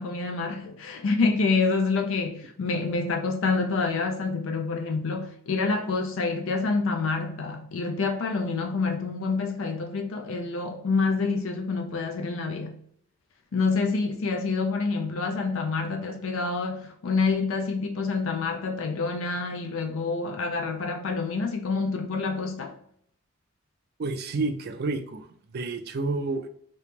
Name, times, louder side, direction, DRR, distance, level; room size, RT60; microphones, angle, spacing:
voice 1, 0.0-12.8 13.5-22.7, left 4 dB, 65° left, 0.4 m, -27 dB
voice 2, 24.0-26.5, right 3 dB, 50° right, 0.4 m, -30 dB
2.9 x 2.9 x 3.4 m
head